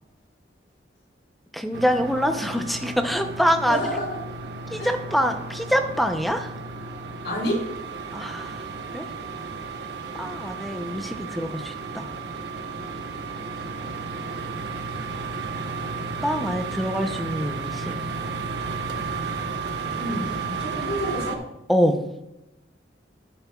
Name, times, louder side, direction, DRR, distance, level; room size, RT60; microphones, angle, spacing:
voice 1, 1.5-3.8 4.7-6.5 8.1-8.6 8.9-9.0 10.2-12.1 16.2-18.0 21.7-22.0, equal, ahead, 5 dB, 0.7 m, -25 dB
sound 1, 1.7-21.3, right 4 dB, 70° right, 1.0 m, -33 dB
voice 2, 3.7-4.2 4.8-4.9 7.2-7.7 19.9-21.4, equal, 75° left, -1 dB, 3.7 m, -29 dB
12.0 x 9.9 x 2.4 m, 0.93 s
head